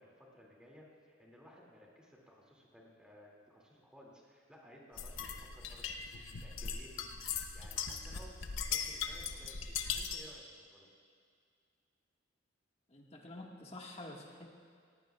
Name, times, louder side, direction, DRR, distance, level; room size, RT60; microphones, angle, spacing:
voice 1, 0.0-8.4 8.7-10.9, equal, 5° right, -3 dB, 2.3 m, -58 dB
sound 1, 5.0-10.3, left 6 dB, 85° left, 0.8 m, -39 dB
voice 2, 12.9-14.5, left 2 dB, 35° left, -1 dB, 1.6 m, -48 dB
18.0 x 16.5 x 2.3 m, 2.2 s
head